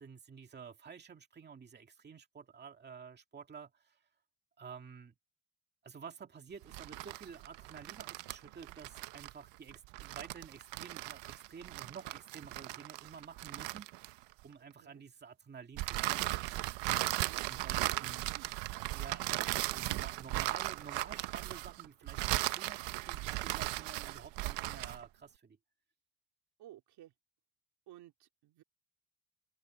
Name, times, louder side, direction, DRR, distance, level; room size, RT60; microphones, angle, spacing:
voice 1, 0.0-4.0 4.6-5.1 5.8-14.1 14.4-16.3 17.5-18.4 18.9-25.6, right 6 dB, 25° right, 2.2 m, -51 dB
sound 1, 6.6-14.4 15.8-25.1, right 18 dB, 80° right, 1.0 m, -37 dB
voice 2, 17.2-17.6 17.9-18.1 18.3-18.5 24.8-25.0 26.6-27.1 27.9-28.6, right 14 dB, 60° right, 2.7 m, -55 dB
open air
cardioid pair, 150°, 43 cm